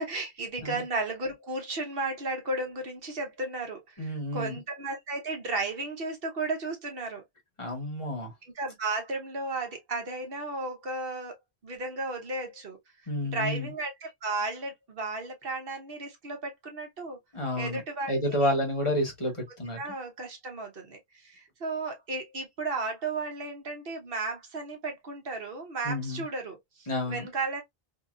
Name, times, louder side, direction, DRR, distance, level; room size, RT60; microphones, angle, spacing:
voice 1, 0.0-7.2 8.4-12.8 13.2-17.2 17.6-18.6 19.8-27.6, right 3 dB, 65° right, 1.1 m, -34 dB
voice 2, 4.0-4.6 7.6-8.3 13.1-13.7 17.3-17.8 18.1-19.8 25.8-26.2 26.9-27.3, left 1 dB, 30° left, 1.2 m, -30 dB
2.8 x 2.7 x 2.4 m
omnidirectional pair, 1.0 m